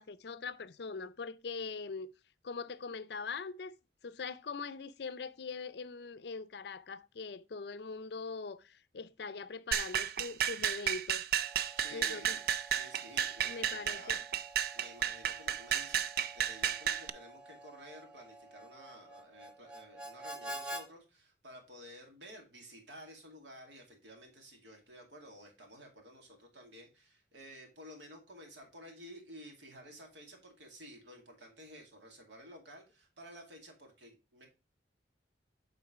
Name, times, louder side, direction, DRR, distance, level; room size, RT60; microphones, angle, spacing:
voice 1, 0.0-2.1 2.4-3.7 4.0-11.3 11.9-12.4 13.4-14.2, left 4 dB, 60° left, 0.5 m, -42 dB
sound 1, 9.7-17.1, right 9 dB, 55° right, 0.4 m, -33 dB
Harmonica, 11.3-20.9, right 1 dB, 5° right, 0.6 m, -49 dB
voice 2, 11.8-14.3 14.7-34.5, equal, 75° right, 2.2 m, -53 dB
8.6 x 3.9 x 4.9 m
head